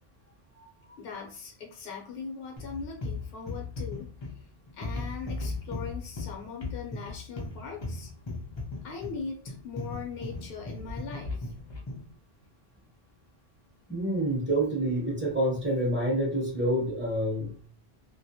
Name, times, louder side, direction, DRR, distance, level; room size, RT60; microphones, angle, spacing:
voice 1, 1.0-4.1 4.8-8.1 8.8-11.5, left 5 dB, 65° left, 0 dB, 0.8 m, -40 dB
sound 1, 2.6-12.1, left 3 dB, 35° left, 0.4 m, -37 dB
voice 2, 13.9-17.6, right 1 dB, 10° right, -4 dB, 0.8 m, -28 dB
2.2 x 2.1 x 2.7 m, 0.43 s
omnidirectional pair, 1.1 m